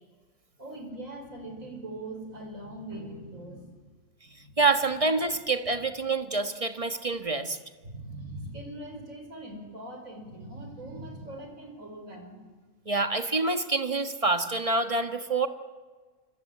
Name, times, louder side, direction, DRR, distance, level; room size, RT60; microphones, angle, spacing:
voice 1, 0.6-3.7 4.2-4.5 7.8-12.4, right 1 dB, 90° right, 4 dB, 5.3 m, -41 dB
voice 2, 4.6-7.6 12.9-15.5, right 3 dB, 25° right, 7 dB, 1.5 m, -26 dB
26.0 x 25.0 x 8.7 m, 1.4 s
omnidirectional pair, 1.4 m